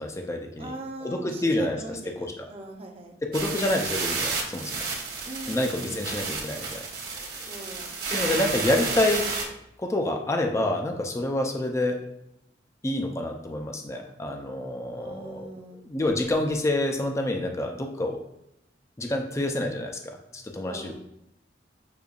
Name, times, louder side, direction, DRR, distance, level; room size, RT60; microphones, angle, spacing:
voice 1, 0.0-0.7 1.0-1.8 2.2-2.5 3.2-4.9 5.5-6.9 7.1-7.5 8.1-9.3 9.8-12.0 12.8-15.5 15.7-18.2 19.0-20.9, left 1 dB, 15° left, 3 dB, 0.4 m, -28 dB
voice 2, 0.6-3.1 5.2-6.0 7.5-7.9 14.9-15.8 20.6-20.9, right 1 dB, 35° right, 2 dB, 0.6 m, -40 dB
sound 1, 3.3-9.4, right 4 dB, 60° right, 1.1 m, -31 dB
6.6 x 2.3 x 2.3 m, 0.82 s
head